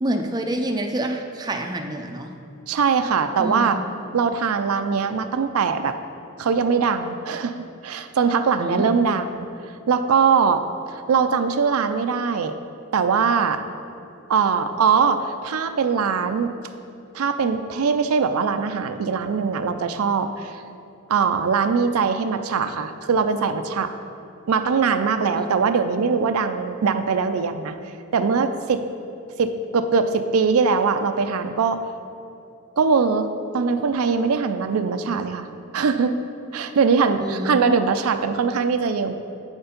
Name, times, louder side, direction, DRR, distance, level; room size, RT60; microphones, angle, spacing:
voice 1, 0.0-2.3 3.4-3.8 8.6-8.8 25.3-25.5 37.2-37.7, right 1 dB, 20° right, 4 dB, 0.4 m, -27 dB
voice 2, 2.7-3.8 4.1-6.0 6.4-9.5 9.9-10.6 11.1-12.5 12.9-13.6 14.3-16.5 17.1-20.6 21.1-23.9 24.5-27.8 28.1-28.8 29.4-31.8 32.8-33.3 33.5-35.5 35.7-36.1 36.5-39.1, right 5 dB, 85° right, 8 dB, 0.4 m, -21 dB
8.5 x 4.5 x 5.1 m, 2.6 s
head